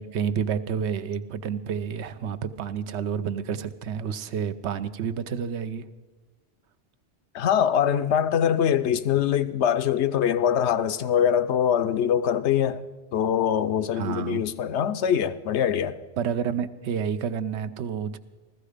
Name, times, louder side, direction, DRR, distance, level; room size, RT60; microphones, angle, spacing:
voice 1, 0.0-5.9 13.9-14.4 16.2-18.2, right 7 dB, 80° right, 0.9 m, -29 dB
voice 2, 7.3-12.8 13.1-16.0, left 9 dB, 80° left, 0.9 m, -23 dB
15.0 x 14.0 x 5.0 m
omnidirectional pair, 1.1 m